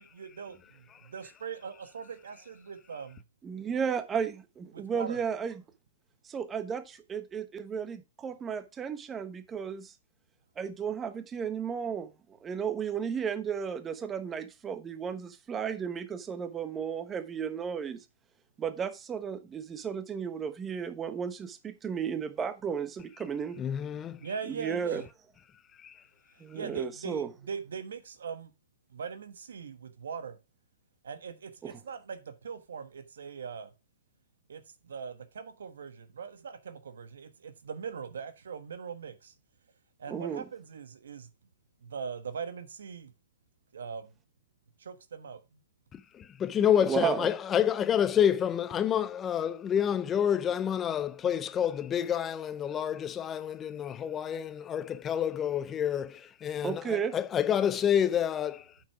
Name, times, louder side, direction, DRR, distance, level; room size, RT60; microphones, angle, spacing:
voice 1, 0.0-3.2 4.7-5.2 24.2-25.0 26.5-28.5 28.9-30.4 31.0-33.7 34.5-39.3 40.0-41.3 41.8-43.1 43.7-44.1 44.8-45.6, right 6 dB, 80° right, 1.3 m, -41 dB
voice 2, 3.4-5.5 6.2-9.9 10.6-12.1 12.4-18.0 18.6-23.6 24.5-25.0 26.4-27.3 31.6-31.8 40.1-40.4 46.8-47.3 56.6-57.2, right 7 dB, 20° right, 1.0 m, -34 dB
voice 3, 23.6-24.2 25.8-25.9 46.1-58.6, left 9 dB, 20° left, 0.5 m, -28 dB
8.4 x 6.0 x 4.8 m
hypercardioid pair, 135°, 0 cm